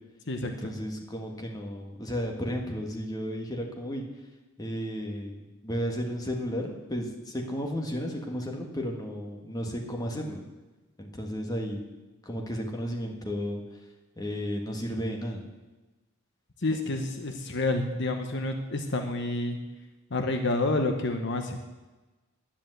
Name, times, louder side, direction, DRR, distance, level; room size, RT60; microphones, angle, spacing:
voice 1, 0.4-4.0 4.6-10.4 11.0-11.8 12.3-13.6 14.2-15.4, equal, 20° left, 1 dB, 1.6 m, -33 dB
voice 2, 16.6-19.6 20.1-21.6, left 2 dB, 55° left, 5 dB, 1.0 m, -29 dB
10.5 x 10.5 x 7.9 m, 1.2 s
head